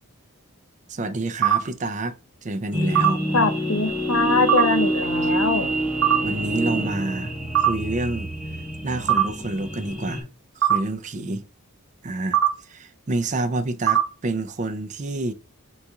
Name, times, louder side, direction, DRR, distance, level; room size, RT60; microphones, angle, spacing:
voice 1, 0.9-2.2 2.4-3.2 6.2-7.3 7.7-8.3 8.8-10.3 10.6-11.5 12.0-15.3, right 2 dB, 35° right, 0.4 m, -28 dB
sound 1, 1.4-1.6 2.9-3.1 4.5-4.6 6.0-6.2 7.5-7.7 9.1-9.2 10.6-10.8 12.3-12.5 13.9-14.0, right 11 dB, 70° right, 0.8 m, -17 dB
sound 2, 2.7-10.2, right 1 dB, 5° right, 0.8 m, -27 dB
voice 2, 3.3-5.7, left 3 dB, 75° left, 0.8 m, -22 dB
4.0 x 2.4 x 4.7 m
head